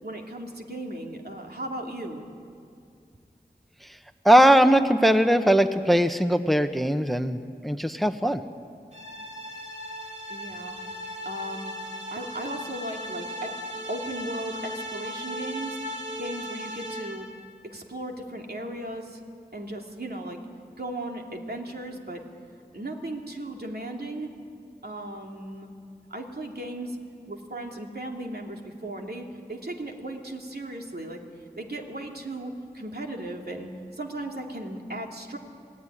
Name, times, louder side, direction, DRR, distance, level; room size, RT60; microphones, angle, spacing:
voice 1, 0.0-2.3 10.3-10.8 11.2-11.7 12.1-13.6 13.9-15.8 16.2-17.3 17.6-19.2 19.5-20.4 20.8-22.2 22.7-24.3 24.8-25.7 26.1-27.0 27.3-31.2 31.6-35.4, right 1 dB, 70° right, 1 dB, 2.9 m, -36 dB
voice 2, 4.2-8.4, equal, ahead, 8 dB, 1.0 m, -20 dB
sound 1, 8.9-17.4, equal, 45° right, 3.5 m, -37 dB
27.5 x 18.0 x 10.0 m, 2.4 s
wide cardioid pair, 50°, 17 cm